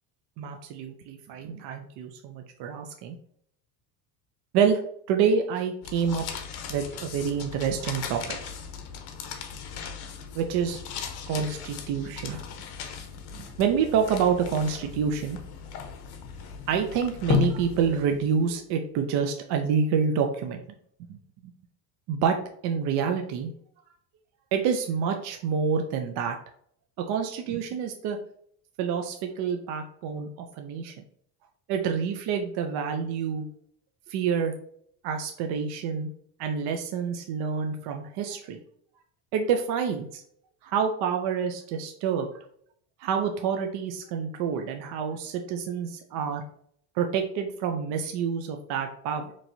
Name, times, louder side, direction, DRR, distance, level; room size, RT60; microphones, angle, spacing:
voice 1, 0.4-3.2 4.5-4.8 5.1-6.2 6.7-8.4 10.4-10.8 11.3-12.4 13.3-15.4 16.7-20.6 21.1-21.2 21.4-21.5 22.1-22.4 22.6-23.5 24.5-26.4 27.1-28.2 28.8-30.9 31.7-33.5 34.1-34.5 35.0-36.1 36.4-38.6 39.3-40.2 40.6-42.3 43.0-46.4 47.0-49.3, right 6 dB, 55° right, 5 dB, 0.6 m, -27 dB
sound 1, 5.8-18.4, left 8 dB, 50° left, 0.7 m, -35 dB
4.3 x 3.0 x 2.6 m, 0.65 s
supercardioid pair, 120°, 49 cm